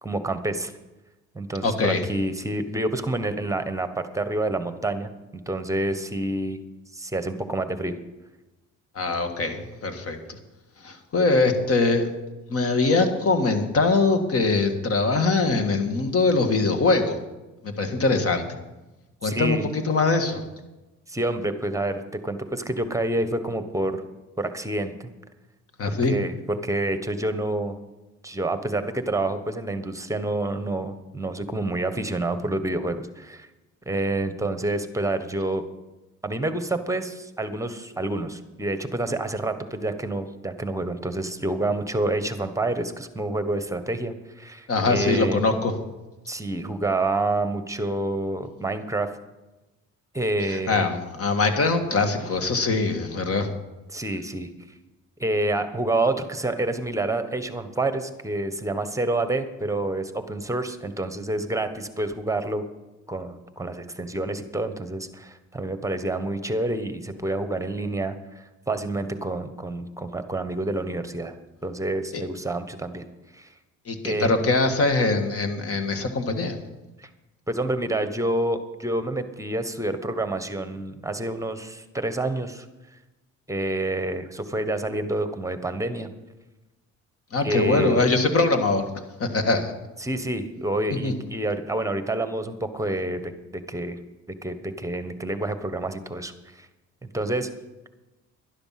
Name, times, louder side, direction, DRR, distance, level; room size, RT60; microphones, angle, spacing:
voice 1, 0.0-0.7 1.3-5.1 5.5-6.6 6.9-7.9 19.2-19.7 21.1-24.0 24.4-25.1 26.1-27.7 28.2-33.5 33.9-35.6 36.2-45.4 46.3-49.1 50.1-50.8 53.9-54.5 55.2-62.6 63.1-71.4 71.6-73.0 73.3-73.5 74.0-74.3 77.0-77.1 77.5-82.7 83.5-86.1 87.4-88.0 90.0-94.0 94.4-96.7 97.0-97.5, right 2 dB, 10° right, 10 dB, 1.2 m, -28 dB
voice 2, 1.6-2.0 9.0-10.4 10.8-12.1 12.5-17.2 17.6-18.5 19.2-20.4 25.8-26.1 44.7-45.7 50.5-53.5 72.1-72.2 73.9-76.6 87.3-88.8 89.2-89.7 91.0-91.1, left 3 dB, 45° left, 7 dB, 1.9 m, -22 dB
12.0 x 11.5 x 5.9 m, 1.1 s
cardioid pair, 90°, 32 cm